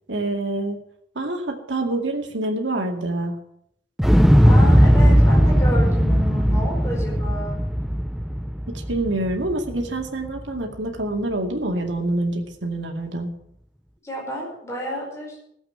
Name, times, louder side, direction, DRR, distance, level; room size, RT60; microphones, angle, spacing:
voice 1, 0.1-0.8 1.2-3.4 8.9-13.3, right 2 dB, 75° right, 2 dB, 2.2 m, -26 dB
Explosion, 4.0-10.0 10.3-10.4, equal, ahead, 0.5 m, -17 dB
voice 2, 4.4-7.5 14.0-15.4, equal, 15° left, -3 dB, 4.8 m, -31 dB
15.5 x 7.9 x 7.6 m, 0.72 s
head